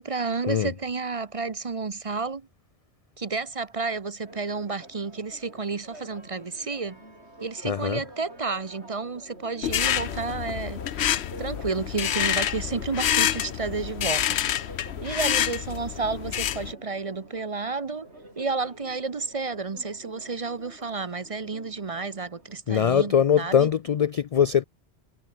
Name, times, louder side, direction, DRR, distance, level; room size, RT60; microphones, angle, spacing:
voice 1, 0.0-2.5 3.2-7.0 7.4-14.4 15.0-18.1 18.4-23.7, right 4 dB, 35° right, 0.8 m, -31 dB
Church bell, 4.2-22.6, right 1 dB, 85° right, 8.2 m, -48 dB
voice 2, 7.6-8.0 22.7-24.6, left 8 dB, 60° left, 0.3 m, -22 dB
sound 1, 9.6-16.7, left 11 dB, 80° left, 1.0 m, -27 dB
omnidirectional pair, 1.1 m